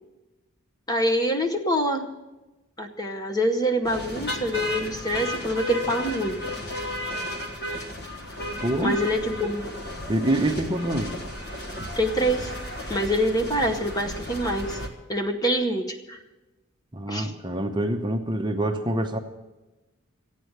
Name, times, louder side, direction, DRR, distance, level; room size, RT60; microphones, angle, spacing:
voice 1, 0.9-2.1 2.8-6.4 7.1-7.3 8.8-9.7 12.0-12.5 12.9-14.8 15.1-16.2 17.1-17.3, equal, 15° left, 5 dB, 0.8 m, -25 dB
sound 1, 3.8-14.9, left 1 dB, 50° left, 1.5 m, -34 dB
voice 2, 8.6-9.0 10.1-11.1 16.9-19.2, right 1 dB, 20° right, 5 dB, 0.7 m, -26 dB
14.5 x 9.1 x 7.9 m, 1.1 s
head